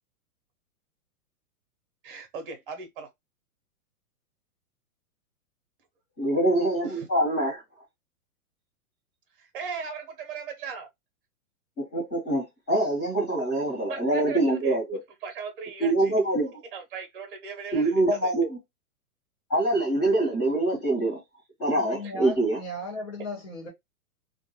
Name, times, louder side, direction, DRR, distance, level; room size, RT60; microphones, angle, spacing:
voice 1, 2.0-3.1 6.8-7.1 9.4-10.9 13.9-14.8 15.2-16.1 16.7-18.3, right 6 dB, 35° right, 0.8 m, -38 dB
voice 2, 6.2-7.6 11.8-15.0 15.8-16.6 17.7-18.6 19.5-21.2 21.6-22.6, right 1 dB, 20° left, 1.0 m, -25 dB
voice 3, 21.7-23.7, left 1 dB, 50° left, 1.1 m, -36 dB
2.4 x 2.2 x 2.9 m
hypercardioid pair, 175°, 45 cm